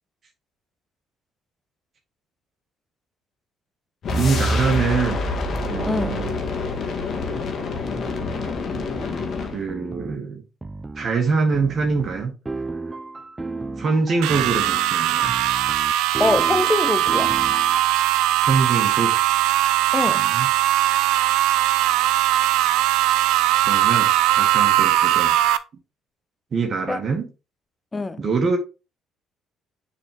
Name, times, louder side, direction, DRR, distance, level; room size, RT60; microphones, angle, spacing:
sound 1, 4.0-9.6, left 3 dB, 55° left, 1.6 m, -26 dB
voice 1, 4.1-5.3 5.7-6.3 9.5-10.4 11.0-12.3 13.8-15.3 18.5-19.1 20.1-20.5 23.6-25.4 26.5-27.3 28.2-28.6, right 4 dB, 50° right, 1.8 m, -24 dB
voice 2, 5.9-6.2 16.2-17.3 19.9-20.2 26.9-27.0 27.9-28.2, left 2 dB, 25° left, 0.7 m, -23 dB
sound 2, 7.2-7.4 7.8-9.2 9.7-10.2 10.6-11.1 11.5-17.8, right 3 dB, 20° right, 0.7 m, -34 dB
sound 3, 14.2-25.6, right 13 dB, 75° right, 0.5 m, -20 dB
7.0 x 4.3 x 3.5 m
hypercardioid pair, 60°, 0 cm